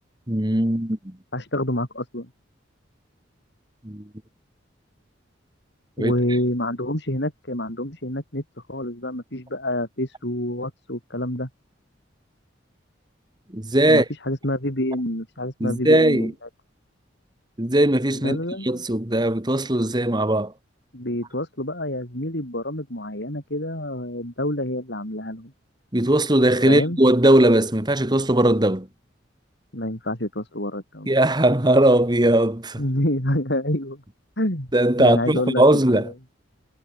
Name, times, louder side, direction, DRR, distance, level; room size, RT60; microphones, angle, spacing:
voice 1, 0.3-1.2 3.8-4.1 6.0-6.1 13.5-14.1 15.6-16.3 17.6-18.4 18.6-20.5 25.9-28.9 31.1-32.8 34.7-36.1, right 1 dB, 20° right, 1.8 m, -19 dB
voice 2, 1.3-2.3 6.0-8.4 8.7-11.5 13.9-16.3 18.2-18.8 20.9-25.5 26.7-27.0 29.7-31.1 32.8-34.0 34.4-34.7 35.0-36.0, left 1 dB, 60° left, 6.5 m, -27 dB
head